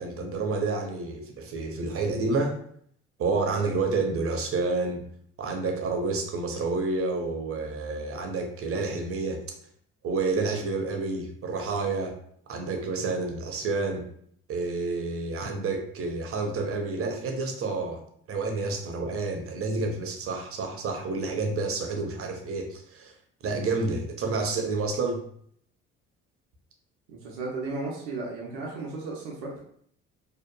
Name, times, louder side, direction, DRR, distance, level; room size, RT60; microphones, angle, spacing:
voice 1, 0.0-2.6 3.2-5.0 5.4-9.4 10.0-12.2 12.5-14.1 14.5-18.0 18.3-23.1 23.4-25.2, right 3 dB, 45° right, 3 dB, 0.6 m, -29 dB
voice 2, 27.1-29.6, right 3 dB, 80° right, -3 dB, 0.6 m, -34 dB
2.7 x 2.3 x 2.2 m, 0.64 s
hypercardioid pair, 55°, 33 cm